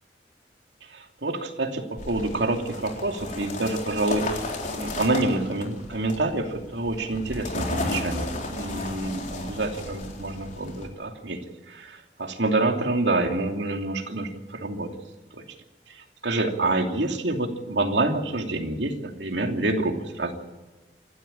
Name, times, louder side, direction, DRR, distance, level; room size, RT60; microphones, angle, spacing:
voice 1, 0.9-4.4 4.8-11.4 11.7-14.9 15.3-15.4 16.2-20.3, right 2 dB, 80° right, 4 dB, 2.7 m, -27 dB
sound 1, 2.0-10.9, left 2 dB, 45° left, 3.8 m, -34 dB
27.0 x 12.5 x 8.7 m, 1.2 s
head